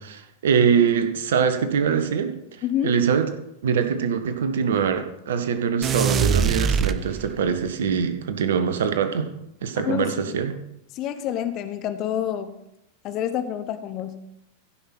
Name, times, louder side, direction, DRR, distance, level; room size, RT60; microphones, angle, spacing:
voice 1, 0.0-2.4 2.8-3.3 3.6-9.3 9.6-10.6, right 7 dB, 60° right, 8 dB, 1.2 m, -23 dB
voice 2, 2.6-3.0 9.8-10.4 10.9-12.5 13.0-14.2, left 10 dB, 35° left, 10 dB, 0.9 m, -28 dB
sound 1, 5.8-7.6, right 6 dB, 25° right, 0.6 m, -23 dB
15.5 x 5.7 x 6.0 m, 0.81 s
figure-of-eight pair, 90°, 0 cm